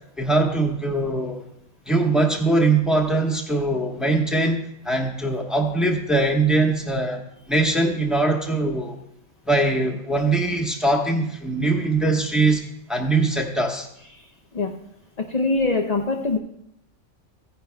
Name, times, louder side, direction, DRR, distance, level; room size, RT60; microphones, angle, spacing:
voice 1, 0.2-1.5 1.8-9.0 9.5-12.6 12.9-13.9, right 2 dB, ahead, 0 dB, 1.1 m, -22 dB
voice 2, 15.2-16.4, left 3 dB, 40° left, 2 dB, 0.6 m, -23 dB
15.0 x 10.0 x 2.3 m, 0.77 s
omnidirectional pair, 1.3 m